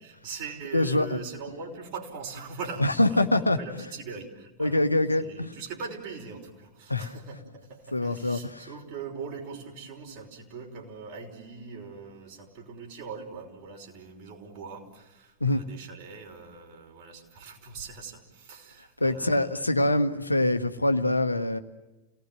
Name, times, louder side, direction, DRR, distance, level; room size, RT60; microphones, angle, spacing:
voice 1, 0.0-4.8 5.2-19.6, right 5 dB, 50° right, 1 dB, 5.6 m, -41 dB
voice 2, 0.7-1.2 2.8-3.6 4.6-5.5 6.9-7.1 7.9-8.7 15.4-15.6 19.0-21.6, left 1 dB, 85° left, 9 dB, 1.2 m, -24 dB
29.5 x 19.0 x 9.4 m, 1.1 s
figure-of-eight pair, 90°, 0 cm